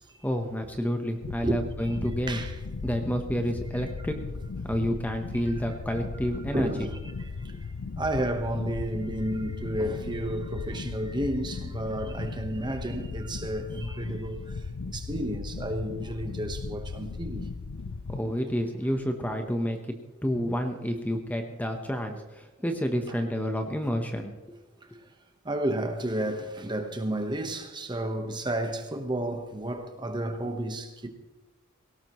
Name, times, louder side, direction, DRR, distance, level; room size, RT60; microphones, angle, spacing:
voice 1, 0.2-2.4 2.8-6.9 18.1-24.3, equal, 5° left, 1.0 m, -30 dB
sound 1, 1.2-18.2, left 4 dB, 85° left, 0.6 m, -37 dB
voice 2, 1.4-2.0 2.3-2.6 4.0-4.1 5.7-5.8 6.5-17.5 23.1-23.2 24.8-24.9 25.4-31.1, right 1 dB, 20° right, 1.2 m, -32 dB
18.0 x 17.5 x 3.1 m
head